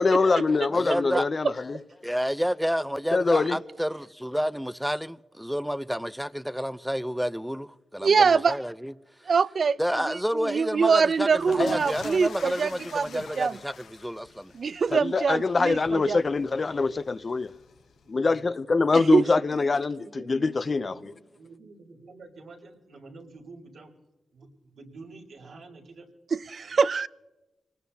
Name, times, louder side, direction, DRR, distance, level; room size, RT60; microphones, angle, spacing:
voice 1, 0.0-1.8 3.1-3.6 14.9-17.5 18.1-21.1, left 3 dB, 45° left, 0.6 m, -24 dB
voice 2, 0.7-1.3 2.0-8.9 9.8-14.5, equal, ahead, 0.6 m, -30 dB
voice 3, 8.0-8.6 9.3-9.8 10.1-13.5 14.5-16.2 19.1-19.2 26.5-27.1, right 5 dB, 60° right, 0.4 m, -24 dB
sound 1, 11.2-18.0, left 6 dB, 90° left, 0.9 m, -42 dB
voice 4, 16.3-17.0 18.0-18.9 19.2-23.9 24.3-26.1 26.5-26.8, right 3 dB, 80° right, 3.6 m, -49 dB
25.5 x 19.0 x 2.8 m
cardioid pair, 80°, 0 cm